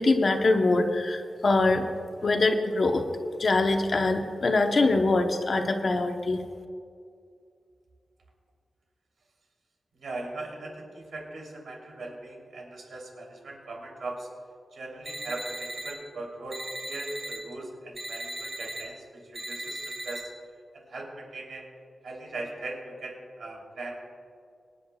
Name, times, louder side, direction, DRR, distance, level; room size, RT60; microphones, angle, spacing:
voice 1, 0.0-1.9 2.2-3.0 3.4-6.4, left 2 dB, 45° left, 5 dB, 0.9 m, -23 dB
voice 2, 9.9-14.3 14.7-20.3 20.9-21.6 22.0-24.0, right 2 dB, 90° right, -2 dB, 3.2 m, -39 dB
sound 1, 15.1-15.9 16.5-17.4 18.0-18.8 19.3-20.2, right 1 dB, 35° right, 2.1 m, -37 dB
25.0 x 10.0 x 2.4 m, 2.3 s
wide cardioid pair, 170°, 0 cm